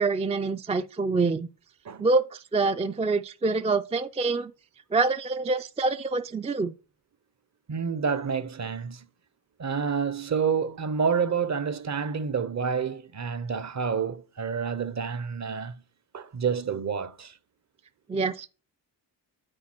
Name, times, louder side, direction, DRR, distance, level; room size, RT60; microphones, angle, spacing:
voice 1, 0.0-1.5 2.0-4.5 4.9-6.7 18.1-18.5, right 3 dB, 15° right, 0.3 m, -26 dB
voice 2, 7.7-9.1 9.6-15.8 16.1-17.4, right 6 dB, 45° right, 0.7 m, -28 dB
8.8 x 4.1 x 4.3 m
cardioid pair, 85°, 40 cm